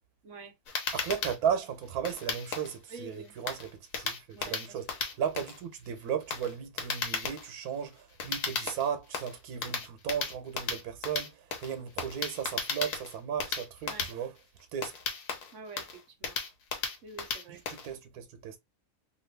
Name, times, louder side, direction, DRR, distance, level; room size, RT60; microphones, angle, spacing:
voice 1, 0.2-0.5 2.9-3.3 4.3-4.8 13.9-14.1 15.5-16.4 17.0-17.6, right 3 dB, 60° right, 1.1 m, -47 dB
sound 1, 0.7-17.9, left 5 dB, 80° left, 1.4 m, -36 dB
voice 2, 0.9-4.9 5.2-14.3 14.7-14.9 17.5-18.6, right 8 dB, 90° right, 1.2 m, -35 dB
3.0 x 2.4 x 3.2 m
omnidirectional pair, 1.6 m